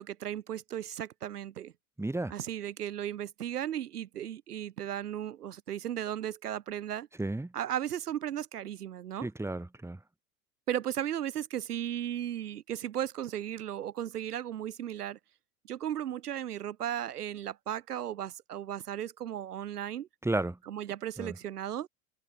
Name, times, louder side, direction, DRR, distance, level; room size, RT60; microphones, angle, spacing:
voice 1, 0.0-1.7 2.3-7.1 7.5-9.3 10.7-15.2 15.7-20.1 20.6-21.9, right 11 dB, 75° right, 0.9 m, -35 dB
voice 2, 2.0-2.3 7.2-7.5 9.2-10.0 20.2-20.6 21.2-21.3, right 2 dB, 5° right, 2.6 m, -32 dB
figure-of-eight pair, 80°, 46 cm